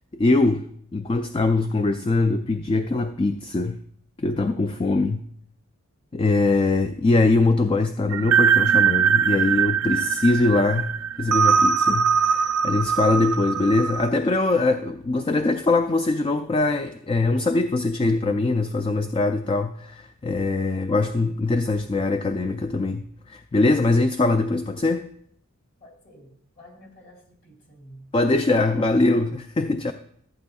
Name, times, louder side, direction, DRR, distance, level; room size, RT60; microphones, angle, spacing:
voice 1, 0.1-0.7 0.9-3.8 4.2-5.2 6.1-10.9 11.2-25.1 28.1-29.9, left 2 dB, 25° left, 8 dB, 0.3 m, -22 dB
sound 1, 8.1-14.1, right 7 dB, 70° right, 0.4 m, -21 dB
voice 2, 20.6-20.9 25.8-28.1, equal, 40° left, 0 dB, 2.7 m, -50 dB
14.5 x 8.8 x 2.3 m, 0.66 s
head